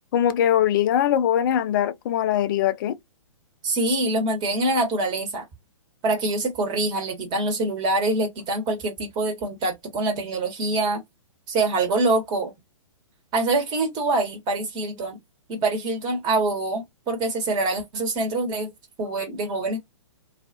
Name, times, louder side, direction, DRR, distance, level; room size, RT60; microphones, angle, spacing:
voice 1, 0.1-3.0, left 10 dB, 40° left, 0.4 m, -21 dB
voice 2, 3.6-5.4 6.0-11.0 11.5-12.5 13.3-15.2 15.5-18.7 19.0-19.9, right 2 dB, 25° right, 1.2 m, -25 dB
2.4 x 2.4 x 2.6 m
figure-of-eight pair, 125°, 17 cm